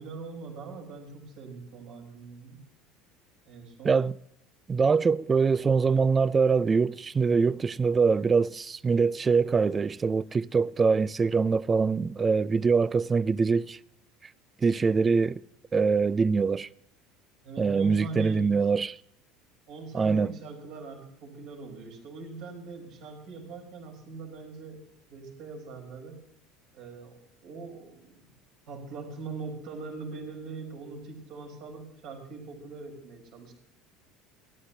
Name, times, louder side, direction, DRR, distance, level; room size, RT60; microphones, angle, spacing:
voice 1, 0.0-2.6 3.5-4.0 17.4-18.5 19.7-24.8 25.1-26.2 26.7-28.1 28.7-33.5, right 4 dB, 65° right, 4.2 m, -42 dB
voice 2, 3.8-4.2 4.7-13.8 14.6-15.4 15.7-16.7 17.6-19.0 19.9-20.3, right 5 dB, 25° right, 0.4 m, -24 dB
29.0 x 11.0 x 2.8 m
hypercardioid pair, 80°, 0 cm